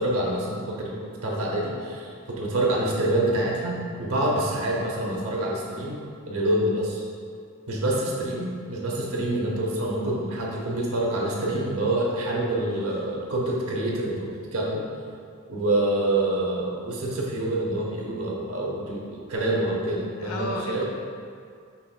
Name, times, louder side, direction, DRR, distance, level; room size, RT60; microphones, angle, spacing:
voice 1, 0.0-7.0 7.7-14.9 15.5-20.8, right 1 dB, 75° right, -3 dB, 0.8 m, -27 dB
voice 2, 4.7-5.1 19.9-20.8, left 1 dB, 80° left, 0 dB, 0.6 m, -35 dB
5.6 x 3.2 x 2.2 m, 2.2 s
head